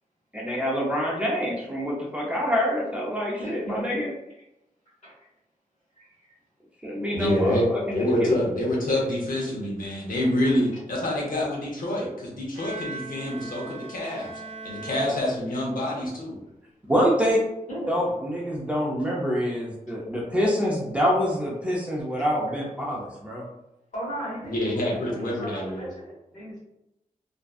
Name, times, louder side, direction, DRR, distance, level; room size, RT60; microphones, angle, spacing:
voice 1, 0.3-4.1 6.8-8.4 16.9-17.4 17.9-23.5, equal, 10° right, -4 dB, 0.5 m, -26 dB
voice 2, 3.3-4.0 5.0-5.1 6.0-6.1 7.0-7.1 13.4-13.5 15.1-15.2 17.7-18.0 23.9-26.6, equal, 55° left, -9 dB, 1.2 m, -36 dB
voice 3, 7.1-7.7 7.9-14.3 14.6-16.4 24.4-25.8, left 1 dB, 75° left, -3 dB, 0.8 m, -27 dB
Bowed string instrument, 12.5-15.9, right 3 dB, 50° right, 0.6 m, -40 dB
2.6 x 2.2 x 2.3 m, 0.88 s
wide cardioid pair, 140°, 14 cm